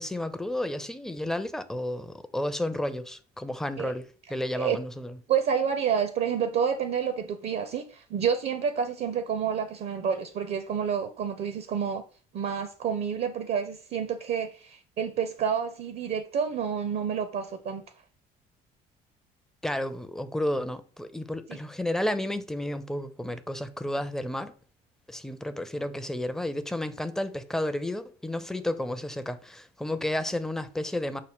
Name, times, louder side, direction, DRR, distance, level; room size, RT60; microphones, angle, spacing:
voice 1, 0.0-5.2 19.6-24.5 25.1-31.2, left 1 dB, ahead, 0.4 m, -32 dB
voice 2, 5.3-12.0 12.3-17.8 21.5-21.6, right 7 dB, 50° right, 0.5 m, -29 dB
5.5 x 2.1 x 3.5 m
hypercardioid pair, 60°, 21 cm